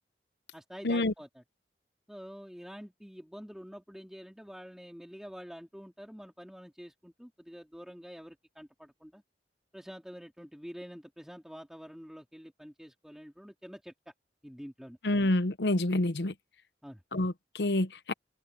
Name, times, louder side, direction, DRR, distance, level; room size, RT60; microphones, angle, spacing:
voice 1, 0.5-1.4 2.1-9.2 9.7-14.1 14.4-15.0 16.8-17.0, equal, 5° right, 3.2 m, -47 dB
voice 2, 15.0-16.3 17.1-18.1, left 1 dB, 70° left, 0.9 m, -28 dB
head